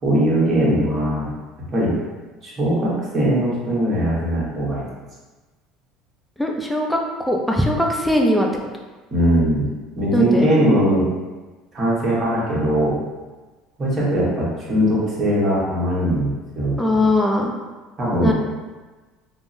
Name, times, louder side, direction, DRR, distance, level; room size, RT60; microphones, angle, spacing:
voice 1, 0.0-1.3 1.7-2.0 2.4-4.9 9.1-9.7 9.9-11.1 11.7-12.9 13.8-17.0 18.0-18.3, equal, 30° right, -6 dB, 1.1 m, -20 dB
voice 2, 6.4-8.5 10.1-10.5 16.8-17.5 18.2-18.3, left 1 dB, ahead, 0 dB, 0.4 m, -20 dB
3.6 x 2.0 x 2.5 m, 1.3 s
supercardioid pair, 115°, 0 cm